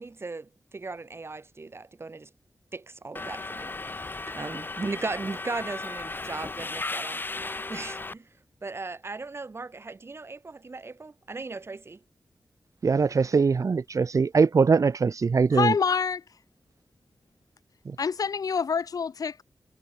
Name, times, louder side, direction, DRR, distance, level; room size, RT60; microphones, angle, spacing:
voice 1, 0.0-2.3 2.7-8.3 8.6-12.0, right 3 dB, 40° right, 2.9 m, -37 dB
Subway metro underground, 3.1-8.1, left 3 dB, 35° left, 1.2 m, -35 dB
voice 2, 12.8-15.7 17.8-17.9, right 5 dB, 60° right, 1.5 m, -22 dB
voice 3, 15.5-16.2 18.0-19.4, left 6 dB, 75° left, 1.9 m, -26 dB
wide cardioid pair, 85°, 6 cm